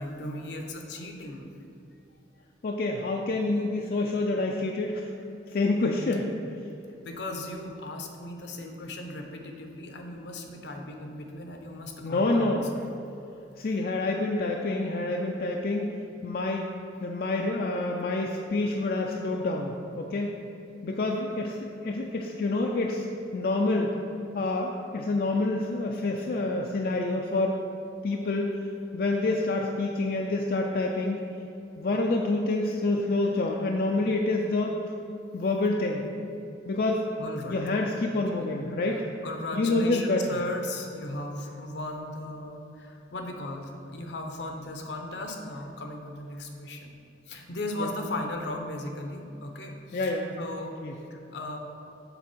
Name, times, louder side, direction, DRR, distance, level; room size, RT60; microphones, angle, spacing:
voice 1, 0.0-1.5 7.0-12.8 37.2-37.6 38.7-47.0 47.3-50.8 51.1-51.6, left 1 dB, 75° left, 3 dB, 0.8 m, -37 dB
voice 2, 2.6-5.1 5.5-6.3 12.0-12.6 13.6-16.6 17.0-20.3 20.8-23.1 23.3-23.9 24.3-27.6 28.0-28.6 28.9-31.2 31.8-34.8 35.3-36.0 36.7-37.0 37.5-39.0 39.5-40.4 47.7-47.9 49.9-50.3 50.8-50.9, left 2 dB, 55° left, 0 dB, 0.4 m, -27 dB
6.9 x 3.6 x 6.1 m, 2.7 s
head